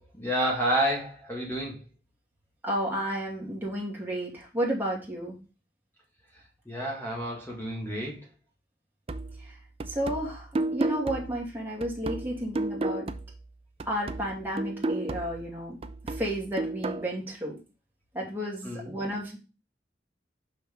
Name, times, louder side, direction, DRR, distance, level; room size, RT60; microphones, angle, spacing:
voice 1, 0.0-1.9 6.7-8.2 18.6-18.9, right 1 dB, 15° left, -2 dB, 2.0 m, -30 dB
voice 2, 2.6-5.4 9.9-13.1 13.9-15.8 16.0-17.6 18.1-19.4, equal, 10° right, -3 dB, 2.4 m, -32 dB
sound 1, 9.1-13.5 13.8-17.1, right 2 dB, 35° right, 0.5 m, -33 dB
5.8 x 5.8 x 3.7 m, 0.30 s
head